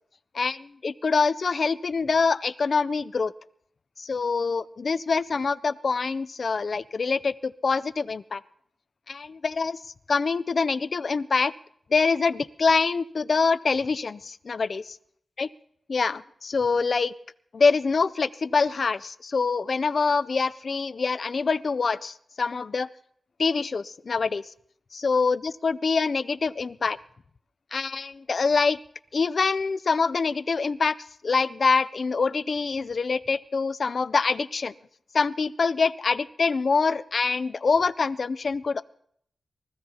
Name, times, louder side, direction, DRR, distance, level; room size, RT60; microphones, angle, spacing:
voice 1, 0.3-3.3 4.0-8.4 9.1-9.8 10.1-11.5 11.9-15.0 15.4-15.5 15.9-17.1 17.5-22.9 23.4-24.5 24.9-27.0 27.7-28.8 29.1-31.0 31.2-34.7 35.1-38.8, left 4 dB, 50° left, 16 dB, 0.5 m, -25 dB
24.0 x 15.0 x 2.9 m, 0.66 s
wide cardioid pair, 140°, 0 cm